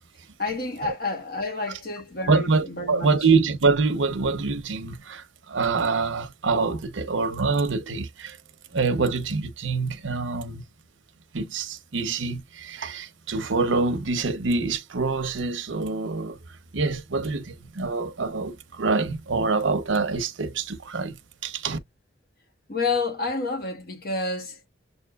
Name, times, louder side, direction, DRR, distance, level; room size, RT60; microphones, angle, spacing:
voice 1, 0.4-3.1 22.7-24.6, left 3 dB, 50° left, 1.2 m, -29 dB
voice 2, 2.3-8.4 8.7-10.6 11.3-16.4 16.7-21.2 21.4-21.8, right 4 dB, 80° right, 0.8 m, -25 dB
7.2 x 2.5 x 2.4 m
head